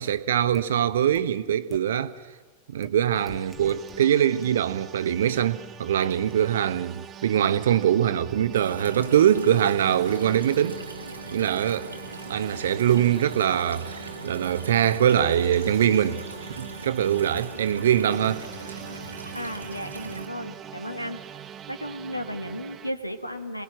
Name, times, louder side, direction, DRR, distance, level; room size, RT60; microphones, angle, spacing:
voice 1, 0.0-2.1 2.7-10.8 11.3-11.9 12.3-16.2 16.6-18.4, right 10 dB, 60° right, 0.9 m, -23 dB
sound 1, 0.5-0.6 1.1-1.2 1.7-1.8 2.8-2.9 3.3-4.0 4.4-4.5, left 1 dB, 5° left, 1.6 m, -45 dB
sound 2, 3.1-22.9, right 9 dB, 25° right, 0.9 m, -44 dB
sound 3, 8.5-20.3, right 2 dB, 80° right, 1.7 m, -40 dB
voice 2, 19.3-21.2 21.7-23.6, equal, 85° left, 1.4 m, -34 dB
27.0 x 19.0 x 7.7 m
figure-of-eight pair, 90°, 0 cm